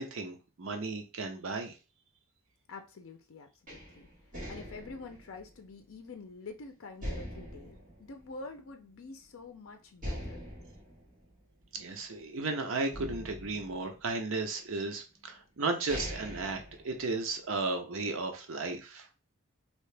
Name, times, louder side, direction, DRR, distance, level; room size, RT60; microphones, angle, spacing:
voice 1, 0.0-1.8 11.7-19.1, right 3 dB, 65° right, 0.6 m, -34 dB
voice 2, 2.7-4.1 4.5-10.4, left 3 dB, 65° left, 0.5 m, -47 dB
sound 1, 3.7-6.5 7.0-8.9 9.3-9.4 10.0-12.4 12.9-14.5 15.2-15.3 15.7-17.5, equal, 35° right, 1.3 m, -43 dB
2.9 x 2.8 x 3.3 m
head